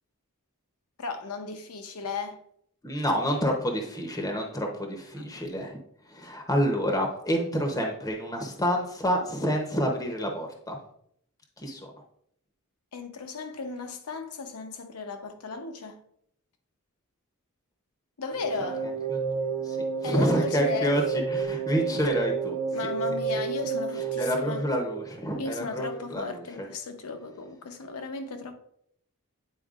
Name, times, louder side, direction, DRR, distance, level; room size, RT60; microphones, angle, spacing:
voice 1, 1.0-2.4 5.2-5.3 12.9-16.0 18.2-18.9 20.0-20.9 22.7-24.6 25.4-28.6, left 4 dB, 80° left, 0.8 m, -35 dB
voice 2, 2.8-5.8 6.1-10.8 11.6-11.9 19.1-19.2 19.6-22.6 24.2-26.7, equal, 15° left, 0.7 m, -28 dB
sound 1, 18.3-25.5, right 5 dB, 60° right, 1.0 m, -31 dB
9.0 x 4.4 x 2.4 m
head